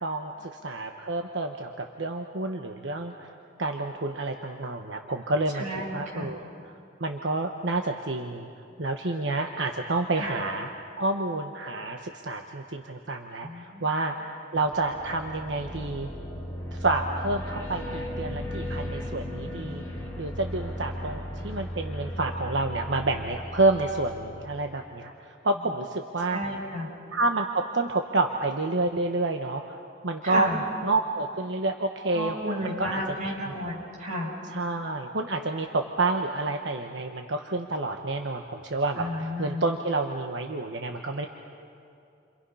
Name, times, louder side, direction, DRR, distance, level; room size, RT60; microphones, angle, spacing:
voice 1, 0.0-3.3 3.6-5.6 5.9-6.7 7.0-8.5 8.8-10.7 11.0-16.1 16.7-19.8 20.2-26.4 27.1-29.8 30.0-30.5 30.8-33.5 34.5-41.3, right 2 dB, 75° right, 3 dB, 1.2 m, -29 dB
voice 2, 5.5-6.3 10.1-10.4 13.4-13.9 26.3-26.9 30.2-30.6 32.1-34.3 38.9-39.6, equal, 45° right, -4 dB, 7.5 m, -33 dB
sound 1, 14.5-24.7, equal, 15° left, 4.5 m, -36 dB
30.0 x 26.5 x 5.7 m, 2.5 s
head